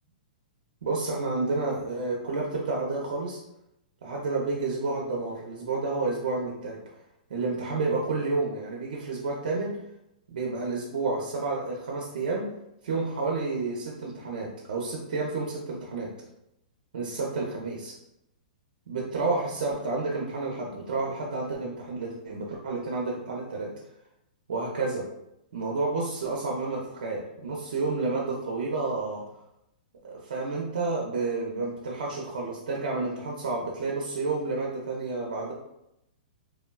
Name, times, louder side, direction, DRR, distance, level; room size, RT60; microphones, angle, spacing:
voice 1, 0.8-3.4 4.0-6.8 7.3-9.7 10.3-12.5 12.8-16.1 16.9-17.9 18.9-23.7 24.5-25.1 25.5-29.2 30.0-35.5, right 3 dB, 75° right, -3 dB, 0.5 m, -30 dB
3.2 x 2.1 x 2.2 m, 0.83 s
hypercardioid pair, 170°, 5 cm